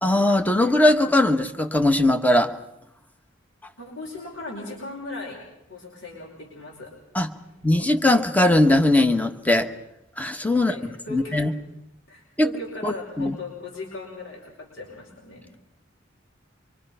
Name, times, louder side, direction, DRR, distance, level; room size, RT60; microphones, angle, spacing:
voice 1, 0.0-2.5 7.1-7.3 7.6-9.7 10.2-10.7 11.1-11.5 12.4-12.5 12.8-13.4, left 1 dB, 10° left, 6 dB, 1.2 m, -20 dB
voice 2, 3.8-5.4 5.7-6.9 10.6-11.5 12.1-15.6, left 2 dB, 85° left, -1 dB, 5.4 m, -38 dB
25.5 x 23.5 x 5.6 m, 0.86 s
head